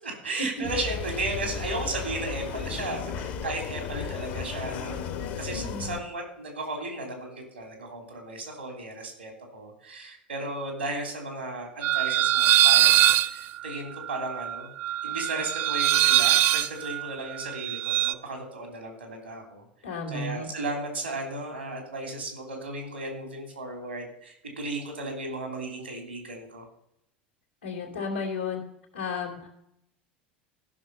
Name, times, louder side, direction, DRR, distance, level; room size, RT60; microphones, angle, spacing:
voice 1, 0.0-5.0 5.4-14.7 15.0-19.7 20.1-26.6, right 2 dB, 90° right, 3 dB, 3.3 m, -35 dB
sound 1, 0.6-6.0, left 6 dB, 60° left, 1.4 m, -34 dB
voice 2, 5.5-6.0 19.8-20.5 27.6-28.6 28.9-29.6, left 4 dB, 85° left, 0 dB, 2.8 m, -33 dB
sound 2, 11.8-18.1, right 14 dB, 50° right, 0.6 m, -22 dB
15.0 x 6.0 x 5.5 m, 0.77 s
figure-of-eight pair, 75°, 6 cm